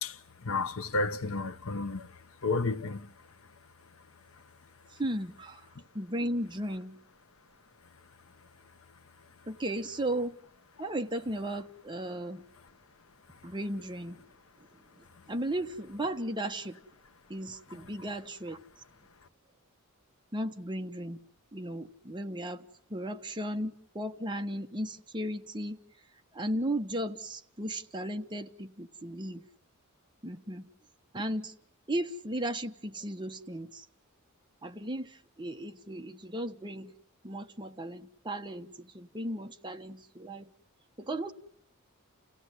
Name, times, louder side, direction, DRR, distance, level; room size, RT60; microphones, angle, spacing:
voice 1, 0.0-3.1 17.7-17.8, left 3 dB, 65° left, 1.0 m, -32 dB
voice 2, 5.0-5.6 5.9-7.0 9.5-10.4 10.8-12.4 13.4-14.2 15.3-16.8 17.3-18.6 20.3-21.2 21.5-22.6 22.9-25.8 26.3-29.4 30.2-30.7 31.1-31.5 31.9-33.8 34.6-36.9 37.2-40.5 41.0-41.3, right 1 dB, 20° right, 1.2 m, -35 dB
30.0 x 16.5 x 9.7 m
head